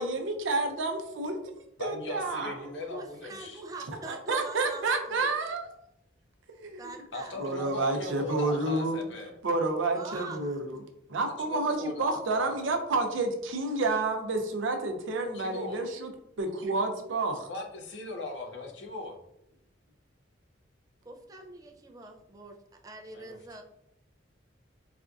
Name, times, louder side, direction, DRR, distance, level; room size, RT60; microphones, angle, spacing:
voice 1, 0.0-2.7 4.0-5.7 6.5-6.9 7.4-9.0 9.4-10.8 11.1-16.1 16.4-17.5, right 3 dB, 90° right, 5 dB, 0.5 m, -30 dB
voice 2, 1.8-3.6 7.1-9.4 11.5-12.7 15.3-15.8 17.5-19.2 23.1-23.4, left 2 dB, 65° left, 2 dB, 0.6 m, -39 dB
voice 3, 2.8-5.3 6.8-7.4 9.9-10.6 21.0-23.6, right 2 dB, 20° right, 3 dB, 0.4 m, -44 dB
4.1 x 2.5 x 2.3 m, 0.79 s
head